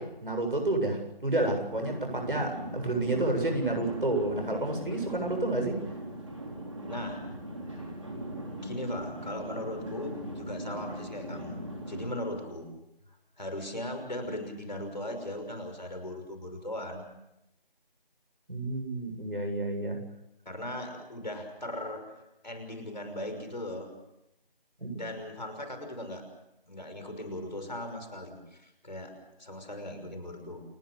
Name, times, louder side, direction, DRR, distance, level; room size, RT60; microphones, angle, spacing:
voice 1, 0.0-5.8 18.5-20.0 24.8-25.0, right 2 dB, 65° right, 5 dB, 7.8 m, -30 dB
sound 1, 1.7-12.1, right 1 dB, 35° right, 4.0 m, -39 dB
voice 2, 6.9-7.3 7.7-7.9 8.6-12.7 13.4-17.1 20.5-22.1 22.4-23.9 25.0-26.3 26.7-30.6, left 1 dB, 50° left, 6 dB, 6.0 m, -38 dB
29.5 x 18.5 x 6.8 m, 0.87 s
figure-of-eight pair, 180°, 29 cm